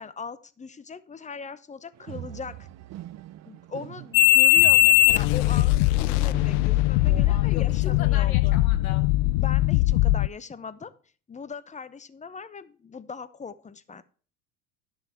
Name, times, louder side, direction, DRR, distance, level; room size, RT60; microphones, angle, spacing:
voice 1, 0.0-2.7 3.5-8.6 9.4-10.9 11.3-14.0, left 5 dB, 15° left, 15 dB, 0.8 m, -40 dB
sound 1, 1.9-7.4, right 13 dB, 40° right, 0.7 m, -42 dB
sound 2, 4.1-10.3, left 19 dB, 60° left, 0.5 m, -20 dB
voice 2, 7.1-9.1, left 7 dB, 80° left, 8 dB, 1.9 m, -39 dB
11.5 x 6.4 x 4.4 m, 0.40 s
hypercardioid pair, 75°, 42 cm